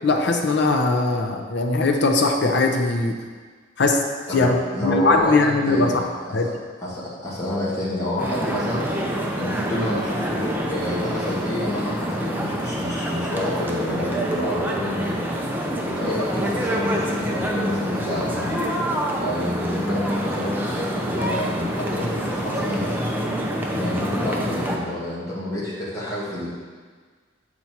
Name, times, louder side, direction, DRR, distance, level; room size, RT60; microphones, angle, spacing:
voice 1, 0.0-3.1 3.8-4.0 4.3-4.6 4.8-6.0 6.3-6.5, left 3 dB, 65° left, 3 dB, 0.7 m, -20 dB
voice 2, 4.3-6.5 6.8-9.0 9.3-15.2 15.8-18.5 19.1-23.2 23.6-26.5, left 1 dB, 20° left, -8 dB, 1.9 m, -28 dB
sound 1, 8.2-24.8, equal, 10° right, 0.6 m, -26 dB
7.3 x 4.3 x 4.5 m, 1.5 s
head